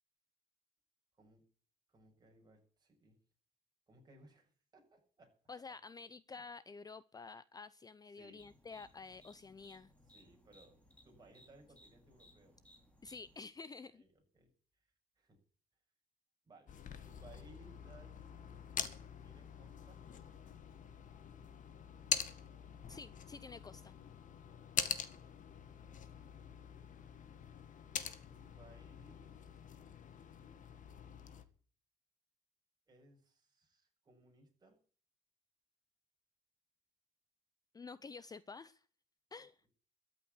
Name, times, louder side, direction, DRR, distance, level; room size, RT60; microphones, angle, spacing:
voice 1, 1.9-3.2 3.9-5.3 6.3-6.4 8.2-8.5 10.1-10.8 11.0-12.5 13.8-14.5 15.2-15.4 16.4-16.7 17.0-18.7 19.2-20.0 26.7-27.0 28.3-29.6 32.9-34.8, right 2 dB, 25° right, 1 dB, 6.9 m, -63 dB
voice 2, 5.5-9.9 13.0-14.0 22.9-23.9 37.7-38.8 39.3-39.6, left 4 dB, 20° left, 16 dB, 0.6 m, -50 dB
sound 1, 8.4-13.4, left 1 dB, 5° left, 3.7 m, -64 dB
sound 2, 16.7-31.4, left 8 dB, 50° left, 1.9 m, -45 dB
13.5 x 8.4 x 10.0 m, 0.44 s
cardioid pair, 110°, 17 cm